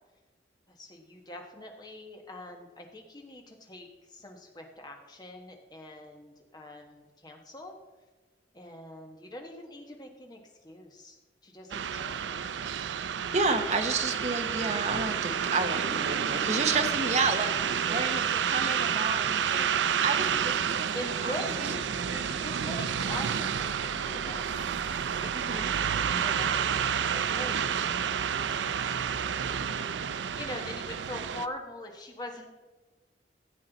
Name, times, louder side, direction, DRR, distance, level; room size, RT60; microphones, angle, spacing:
voice 1, 0.7-7.8 8.5-12.5 17.8-18.2 20.9-21.8 22.1-24.8 25.2-29.9 30.4-32.5, left 1 dB, 25° left, 3 dB, 1.2 m, -43 dB
sound 1, 11.7-31.5, right 8 dB, 90° right, 0.4 m, -30 dB
voice 2, 13.3-19.7 20.0-20.9 21.2-21.7 25.3-25.7, right 3 dB, 40° right, 6 dB, 0.9 m, -31 dB
14.5 x 7.7 x 4.0 m, 1.3 s
head